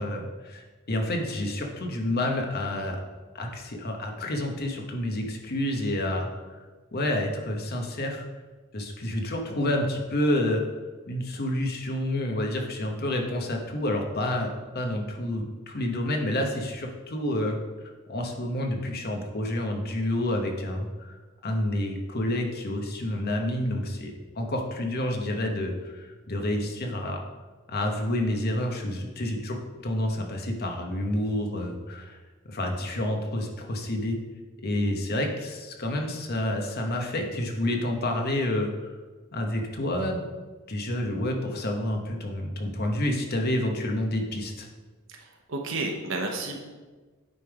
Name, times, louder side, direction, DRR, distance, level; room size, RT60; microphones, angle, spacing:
voice 1, 0.0-3.0 3.3-6.3 6.9-8.2 8.7-10.6 11.1-17.6 18.1-21.2 21.4-27.2 27.7-32.2 32.5-34.2 34.6-39.0 39.3-40.3 40.7-44.7, left 1 dB, 50° left, 2 dB, 1.1 m, -29 dB
voice 2, 45.1-46.6, right 2 dB, 70° right, 2 dB, 0.9 m, -32 dB
9.1 x 3.5 x 4.9 m, 1.3 s
head